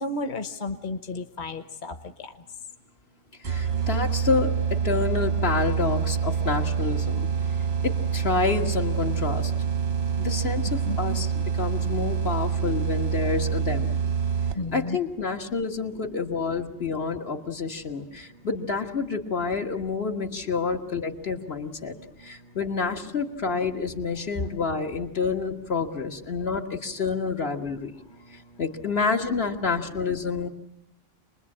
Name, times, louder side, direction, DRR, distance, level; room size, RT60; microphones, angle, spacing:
voice 1, 0.0-1.9 10.8-11.2 14.6-15.0, left 2 dB, 50° left, 8 dB, 1.2 m, -32 dB
voice 2, 3.4-7.3 7.8-9.5 10.2-14.0 14.7-28.0 28.3-30.5, left 4 dB, 80° left, 3 dB, 1.9 m, -28 dB
sound 1, 3.4-14.8, right 7 dB, 85° right, 1.4 m, -26 dB
27.0 x 21.0 x 8.6 m, 0.83 s
omnidirectional pair, 1.0 m